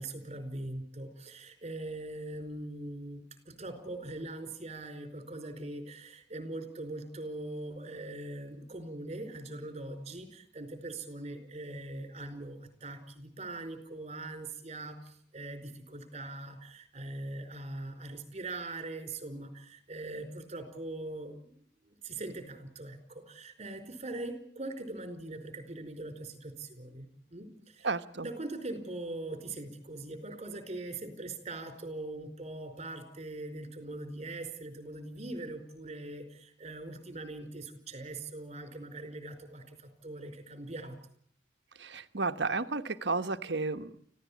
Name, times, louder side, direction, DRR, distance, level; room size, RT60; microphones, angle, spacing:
voice 1, 0.0-27.9 28.1-41.0, right 2 dB, 35° right, 8 dB, 4.7 m, -41 dB
voice 2, 27.8-28.3 41.8-44.1, right 3 dB, 70° right, 10 dB, 1.3 m, -32 dB
25.5 x 16.0 x 8.6 m, 0.62 s
head